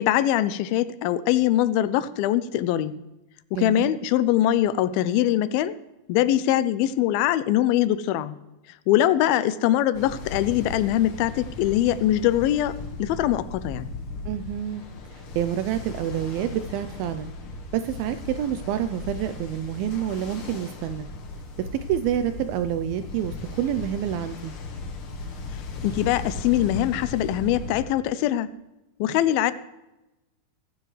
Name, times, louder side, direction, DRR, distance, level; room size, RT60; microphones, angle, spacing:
voice 1, 0.0-3.0 3.5-5.8 6.1-8.4 8.9-13.9 25.8-28.5 29.0-29.5, left 12 dB, 85° left, 14 dB, 2.5 m, -22 dB
voice 2, 3.5-3.9 14.3-14.8 15.1-17.3 17.7-21.1 21.6-24.5, right 10 dB, 80° right, 9 dB, 2.4 m, -28 dB
Ocean, 9.9-27.8, left 3 dB, 50° left, 1.7 m, -37 dB
24.0 x 10.0 x 3.2 m, 0.98 s
omnidirectional pair, 4.3 m